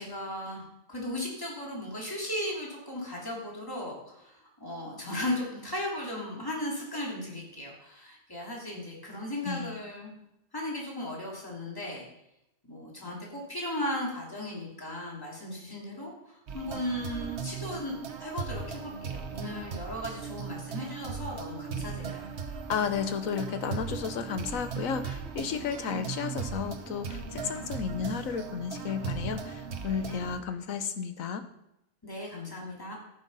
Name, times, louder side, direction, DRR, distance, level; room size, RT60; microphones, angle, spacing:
voice 1, 0.0-10.1 10.5-12.1 12.7-17.9 18.2-22.2 32.0-33.0, left 1 dB, 15° left, -3 dB, 3.0 m, -36 dB
voice 2, 9.4-9.8 22.7-31.5, left 7 dB, 85° left, 9 dB, 1.3 m, -33 dB
sound 1, 16.5-30.4, right 5 dB, 55° right, 1.2 m, -38 dB
14.0 x 6.4 x 5.5 m, 0.85 s
omnidirectional pair, 1.4 m